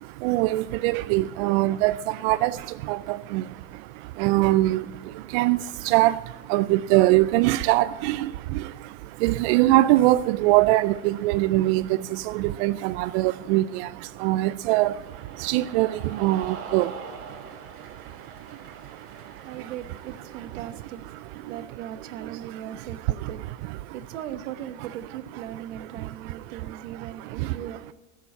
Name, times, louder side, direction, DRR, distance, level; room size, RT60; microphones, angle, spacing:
voice 1, 0.0-19.7 21.4-21.6 22.2-22.9 23.2-23.3 23.7-24.0 26.0-27.6, right 17 dB, 60° right, 0.5 m, -24 dB
Cheering, 10.2-23.6, right 5 dB, 40° right, 3.8 m, -46 dB
voice 2, 18.9-27.9, right 10 dB, 85° right, 1.2 m, -39 dB
13.5 x 7.4 x 8.5 m
supercardioid pair, 125°, 37 cm